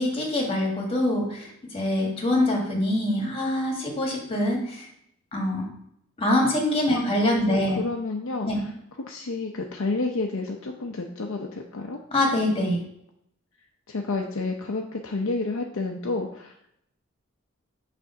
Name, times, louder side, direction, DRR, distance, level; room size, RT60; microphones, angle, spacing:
voice 1, 0.0-4.9 5.3-5.6 6.2-7.8 8.4-8.7 12.1-12.8, left 1 dB, 30° left, 0 dB, 1.8 m, -24 dB
voice 2, 7.5-8.5 9.0-12.0 13.9-16.5, left 3 dB, 80° left, 2 dB, 0.6 m, -30 dB
6.2 x 3.4 x 5.8 m, 0.73 s
head